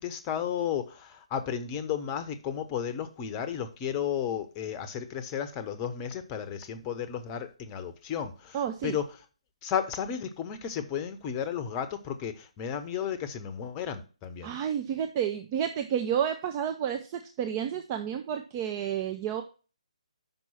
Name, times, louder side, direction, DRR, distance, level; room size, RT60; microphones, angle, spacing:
voice 1, 0.0-9.2 9.6-14.5, left 8 dB, 20° left, 0.8 m, -33 dB
voice 2, 8.5-9.0 14.4-19.4, right 9 dB, 25° right, 0.5 m, -30 dB
6.1 x 5.4 x 5.6 m
figure-of-eight pair, 140°, 4 cm